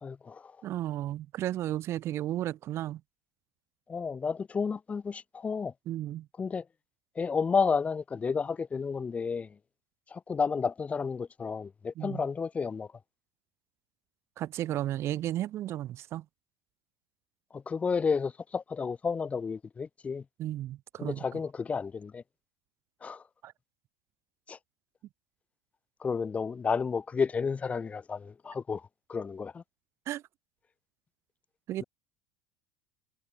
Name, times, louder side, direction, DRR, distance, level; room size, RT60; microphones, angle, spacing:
voice 1, 0.0-0.6 3.9-5.7 6.4-6.6 7.1-9.6 10.1-12.9 17.5-20.2 21.0-22.2 23.0-23.2 24.5-24.6 26.0-29.6, left 5 dB, 20° left, 1.1 m, -31 dB
voice 2, 0.6-3.0 5.9-6.3 12.0-12.2 14.4-16.2 20.4-21.2 23.4-23.5 30.1-30.2 31.7-31.8, right 13 dB, 45° right, 0.8 m, -33 dB
supercardioid pair, 110°, 6 cm